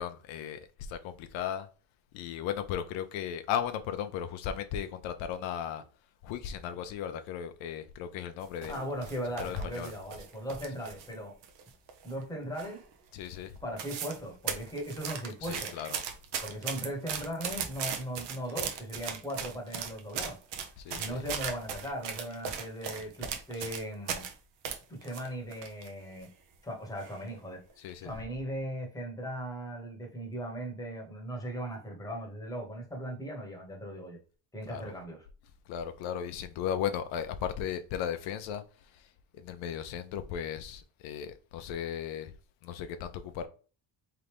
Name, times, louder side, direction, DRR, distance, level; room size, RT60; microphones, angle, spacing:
voice 1, 0.0-1.7 2.1-5.8 6.2-8.9 9.4-9.9 13.1-13.5 15.4-16.0 20.8-21.2 27.8-28.1 34.7-34.8 35.7-42.3 42.6-43.5, left 9 dB, 75° left, 0.6 m, -36 dB
sound 1, 8.4-11.1 11.4-12.2 12.6-12.9 13.2-13.3 13.6-14.2 14.5-24.3 24.6-25.9 26.2-26.3 27.0-27.3 27.7-27.9, right 7 dB, 60° right, 0.9 m, -38 dB
voice 2, 8.7-11.3 12.0-12.8 13.6-15.7 16.4-20.4 20.9-24.3 24.9-26.3 26.6-27.6 28.0-34.2 34.5-35.3, equal, 10° left, 1.1 m, -38 dB
3.8 x 3.3 x 3.4 m
cardioid pair, 135°, 46 cm